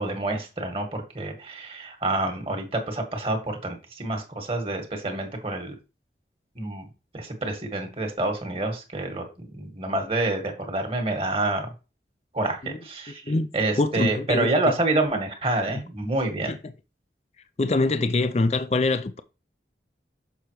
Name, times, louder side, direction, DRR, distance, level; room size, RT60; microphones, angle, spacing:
voice 1, 0.0-5.7 6.5-6.9 7.1-11.7 12.3-13.2 13.5-16.5, right 2 dB, 30° right, 1.7 m, -27 dB
voice 2, 13.8-14.5 16.5-16.6 17.6-19.2, left 2 dB, 40° left, 0.5 m, -24 dB
6.9 x 5.7 x 3.1 m
head